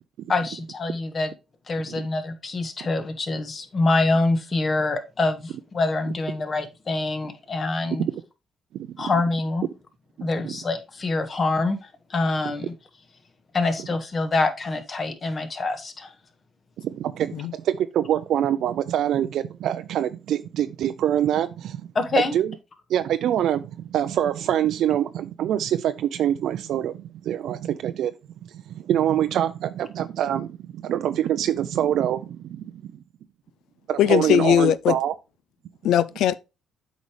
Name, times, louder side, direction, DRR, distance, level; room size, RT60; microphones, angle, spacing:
voice 1, 0.3-1.3 1.7-8.0 9.0-9.7 10.2-12.7 13.5-16.1 21.9-22.3, left 3 dB, 40° left, 1.5 m, -25 dB
voice 2, 8.7-9.1 10.2-10.6 16.8-21.9 22.3-22.5 22.9-28.1 28.5-32.6 33.9-35.1, right 10 dB, 75° right, 0.4 m, -25 dB
voice 3, 34.0-35.0 35.8-36.4, left 11 dB, 85° left, 0.4 m, -19 dB
8.1 x 5.1 x 3.1 m
cardioid pair, 90°, 0 cm